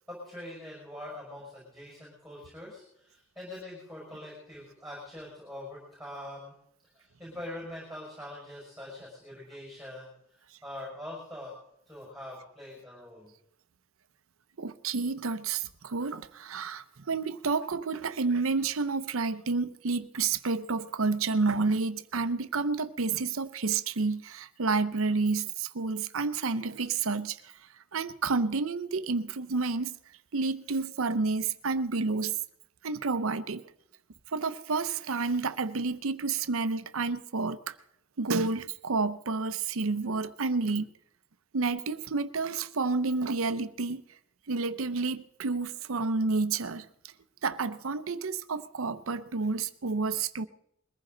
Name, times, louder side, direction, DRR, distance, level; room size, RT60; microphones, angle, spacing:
voice 1, 0.1-6.5 6.9-11.6 11.9-13.3, left 1 dB, ahead, 5.6 m, -43 dB
voice 2, 14.6-27.5 27.9-30.0 30.3-32.3 32.8-33.6 34.3-37.7 38.2-40.9 41.5-44.0 44.5-47.1 47.4-50.5, right 4 dB, 85° right, 0.7 m, -30 dB
21.5 x 15.0 x 3.9 m
head